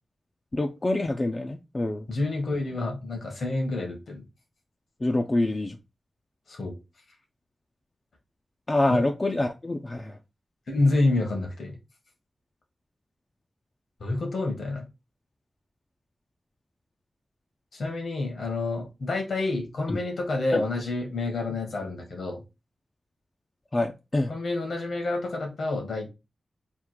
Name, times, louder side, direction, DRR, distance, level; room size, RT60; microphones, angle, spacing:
voice 1, 0.5-2.1 5.0-5.8 8.7-10.2 19.9-20.0 20.5-20.6 23.7-24.3, left 2 dB, 30° left, 0.4 m, -26 dB
voice 2, 2.1-4.2 6.5-6.8 8.9-9.0 10.7-11.8 14.0-14.9 17.7-22.4 24.3-26.1, left 2 dB, 75° left, 1.5 m, -28 dB
3.6 x 2.4 x 4.4 m
wide cardioid pair, 110°, 0 cm